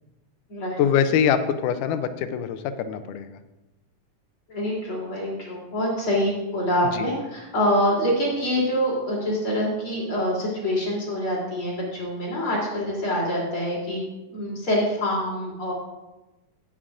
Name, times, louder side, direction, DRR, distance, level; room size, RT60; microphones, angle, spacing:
voice 1, 0.8-3.4 6.8-7.1, left 8 dB, 90° left, 10 dB, 2.2 m, -24 dB
voice 2, 4.5-14.0 14.3-15.7, equal, 40° left, -5 dB, 3.9 m, -25 dB
18.0 x 7.3 x 2.5 m, 1.0 s
omnidirectional pair, 3.6 m